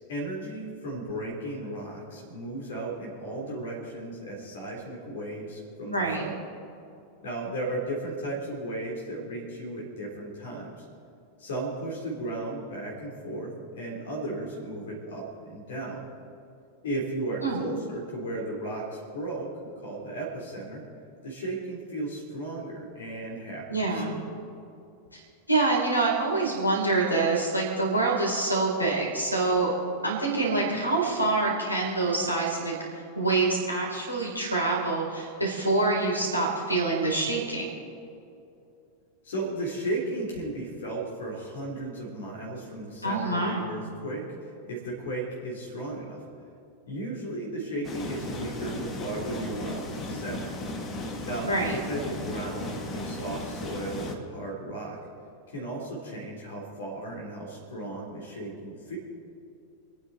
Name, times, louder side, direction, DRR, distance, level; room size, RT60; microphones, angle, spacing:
voice 1, 0.1-6.3 7.2-10.8 11.4-16.1 16.8-19.5 19.8-20.8 21.2-24.3 39.2-46.2 46.9-50.5 51.2-55.0 55.5-59.0, right 1 dB, 60° left, -1 dB, 3.3 m, -35 dB
voice 2, 5.9-6.3 17.4-17.6 23.7-24.1 25.5-29.7 30.0-32.7 33.2-37.7 43.0-43.7 51.4-51.8, right 3 dB, 85° left, -1 dB, 3.8 m, -26 dB
sound 1, 47.8-54.2, left 1 dB, 25° left, 1.8 m, -36 dB
27.5 x 9.4 x 4.2 m, 2.6 s
figure-of-eight pair, 90°, 0 cm